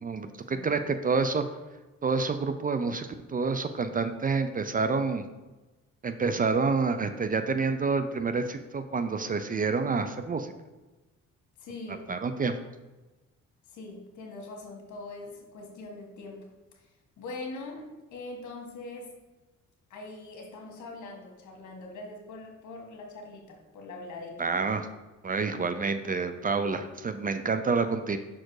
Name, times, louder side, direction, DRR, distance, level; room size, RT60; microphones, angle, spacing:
voice 1, 0.0-1.4 2.0-5.2 6.0-10.5 12.1-12.6 24.4-24.9 25.2-28.2, right 4 dB, 30° right, 10 dB, 0.5 m, -28 dB
voice 2, 11.6-12.1 13.7-19.1 19.9-24.5, left 2 dB, 70° left, 1 dB, 1.7 m, -42 dB
5.8 x 4.4 x 4.7 m, 1.1 s
cardioid pair, 90°, 30 cm